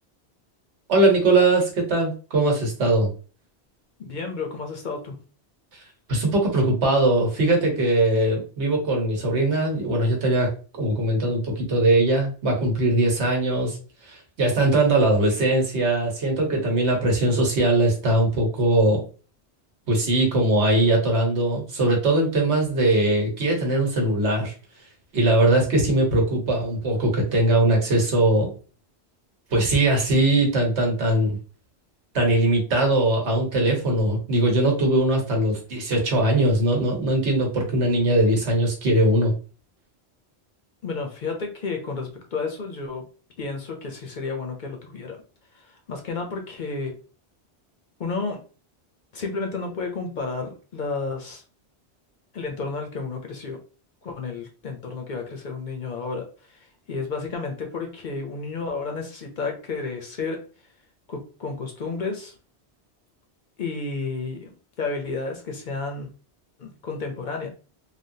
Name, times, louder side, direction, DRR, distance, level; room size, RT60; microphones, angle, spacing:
voice 1, 0.9-3.1 6.1-10.5 10.7-13.8 14.1-19.0 19.9-24.5 25.1-28.5 29.5-31.4 32.1-39.3, right 1 dB, 85° right, 0 dB, 1.3 m, -21 dB
voice 2, 4.0-5.2 40.8-43.1 43.4-45.2 45.5-46.9 48.0-48.4 49.1-51.4 52.3-53.6 54.0-60.4 61.1-62.4 63.6-66.1 66.6-67.5, left 4 dB, 55° left, 3 dB, 0.6 m, -31 dB
3.3 x 2.2 x 2.6 m, 0.37 s
omnidirectional pair, 1.1 m